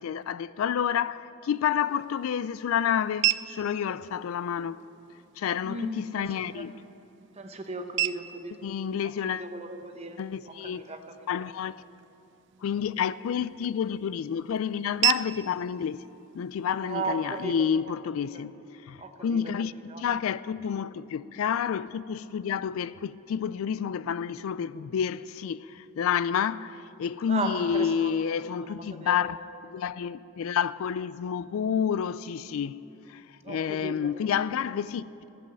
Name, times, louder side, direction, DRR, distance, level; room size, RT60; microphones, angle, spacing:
voice 1, 0.0-4.8 5.4-6.8 8.6-9.5 10.2-10.8 11.3-11.8 12.6-16.1 16.3-18.6 18.8-29.4 29.6-35.0, left 8 dB, 75° left, 0.3 m, -29 dB
sound 1, 1.5-17.5, right 13 dB, 55° right, 0.3 m, -36 dB
voice 2, 5.6-6.3 6.5-6.7 7.4-8.5 9.4-10.2 10.7-11.0 11.3-11.4 16.8-17.5 19.0-19.4 19.9-20.0 27.3-28.1 28.6-29.3 33.4-34.1, right 3 dB, 30° right, 0.8 m, -35 dB
14.5 x 7.7 x 7.7 m
head